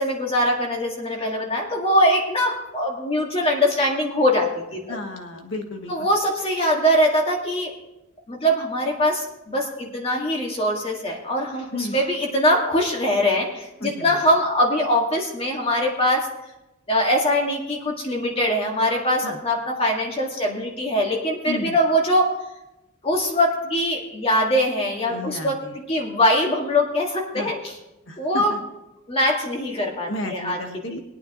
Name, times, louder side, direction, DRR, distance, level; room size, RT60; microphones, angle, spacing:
voice 1, 0.0-5.0 5.9-7.7 8.3-16.3 16.9-22.3 23.0-25.5 25.9-27.7 28.2-28.5 29.1-30.6 30.9-31.0, equal, 30° left, 0 dB, 2.1 m, -22 dB
voice 2, 4.9-5.9 11.7-12.0 13.8-14.2 19.2-19.4 21.4-21.8 25.1-25.8 27.3-27.5 28.1-28.6 30.1-31.0, left 2 dB, 60° left, 4 dB, 1.5 m, -32 dB
20.5 x 9.1 x 3.1 m, 0.94 s
head